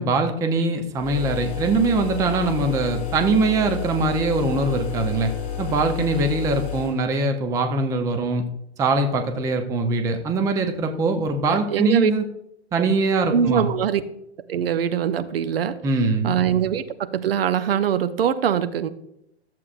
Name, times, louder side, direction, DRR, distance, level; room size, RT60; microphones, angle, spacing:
voice 1, 0.0-5.3 5.6-8.4 8.8-12.3 12.7-13.7 15.8-16.3, right 3 dB, 10° right, 6 dB, 0.5 m, -22 dB
sound 1, 1.0-7.0, left 8 dB, 25° left, 3.2 m, -30 dB
voice 2, 11.5-12.1 12.8-12.9 13.3-14.0 14.5-15.8 16.2-18.9, right 8 dB, 60° right, 11 dB, 0.8 m, -23 dB
13.0 x 7.5 x 2.5 m, 0.78 s
figure-of-eight pair, 120°, 34 cm